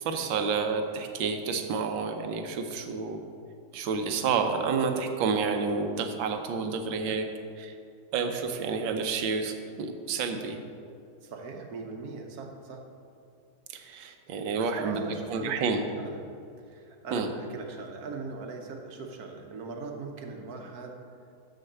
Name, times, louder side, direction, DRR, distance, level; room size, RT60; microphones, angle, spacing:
voice 1, 0.0-3.2 3.7-7.3 7.6-7.7 8.1-10.6 13.7-15.0 15.3-15.8 17.1-17.3, right 5 dB, 75° right, 6 dB, 1.5 m, -29 dB
voice 2, 11.2-12.8 14.6-15.5 16.0-16.2 16.7-20.9, right 4 dB, 55° right, 3 dB, 1.3 m, -39 dB
7.1 x 6.5 x 6.7 m, 2.4 s
omnidirectional pair, 2.1 m